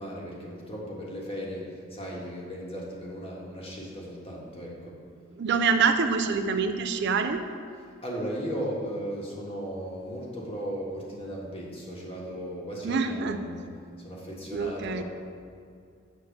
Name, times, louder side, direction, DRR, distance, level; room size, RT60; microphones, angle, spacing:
voice 1, 0.0-5.0 8.0-13.7 14.0-15.0, equal, 30° left, -3 dB, 1.5 m, -36 dB
voice 2, 5.4-7.4 12.8-13.4 14.5-15.0, right 5 dB, 55° right, 8 dB, 0.4 m, -25 dB
8.1 x 4.1 x 6.5 m, 2.3 s
head